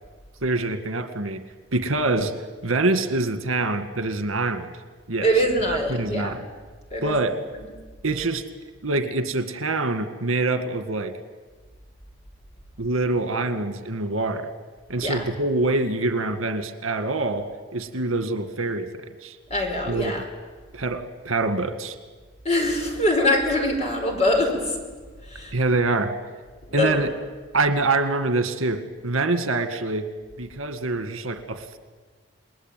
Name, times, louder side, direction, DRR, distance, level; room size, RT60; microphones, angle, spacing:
voice 1, 0.4-1.4 1.7-2.3 2.6-4.7 5.1-5.3 5.7-6.4 7.0-7.4 8.0-8.4 8.8-11.1 12.8-14.5 14.9-17.5 17.7-18.9 19.2-19.4 19.9-20.1 20.7-22.0 25.5-26.1 26.7-27.1 27.5-30.1 30.4-31.8, right 2 dB, 80° right, 9 dB, 2.0 m, -25 dB
voice 2, 5.2-6.4 6.9-7.2 15.0-15.2 19.5-20.2 22.4-24.8 25.2-25.5 26.7-27.0, left 1 dB, 30° left, 2 dB, 5.1 m, -23 dB
29.0 x 20.5 x 9.3 m, 1.4 s
head